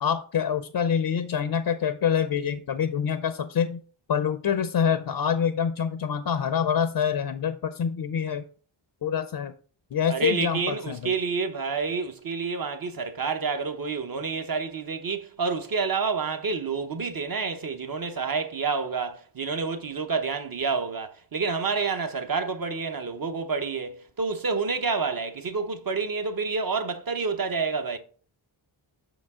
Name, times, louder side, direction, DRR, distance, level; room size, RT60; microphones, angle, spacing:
voice 1, 0.0-3.8 4.1-8.4 9.0-9.5 9.9-11.1, left 7 dB, 55° left, 0.5 m, -26 dB
voice 2, 10.1-28.0, right 4 dB, 45° right, 0.8 m, -29 dB
6.2 x 5.1 x 3.5 m
wide cardioid pair, 100°, 49 cm